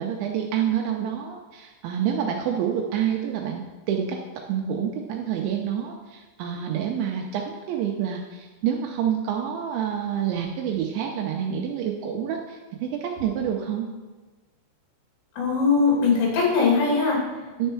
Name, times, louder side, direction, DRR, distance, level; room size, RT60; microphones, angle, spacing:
voice 1, 0.0-3.6 3.9-4.2 4.5-13.9 17.6-17.7, right 9 dB, 85° right, 1 dB, 2.7 m, -27 dB
voice 2, 15.3-17.5, left 4 dB, 80° left, -3 dB, 5.1 m, -21 dB
10.0 x 4.5 x 7.0 m, 1.2 s
omnidirectional pair, 5.9 m